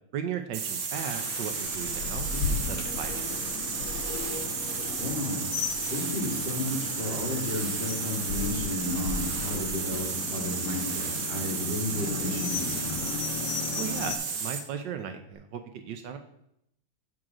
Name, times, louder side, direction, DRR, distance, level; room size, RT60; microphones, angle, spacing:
voice 1, 0.1-3.5 13.7-16.2, right 8 dB, 75° right, 7 dB, 1.2 m, -37 dB
sound 1, 0.5-14.7, right 6 dB, 55° right, 1.2 m, -33 dB
Rain, 0.9-14.2, left 6 dB, 80° left, 1.4 m, -36 dB
sound 2, 1.6-7.4 7.7-8.3 15.3-15.4, left 5 dB, 55° left, 1.0 m, -45 dB
voice 2, 2.3-2.7 5.0-5.5 5.9-13.0, left 1 dB, 30° left, -2 dB, 2.0 m, -33 dB
7.7 x 3.7 x 5.9 m, 0.76 s
omnidirectional pair, 2.2 m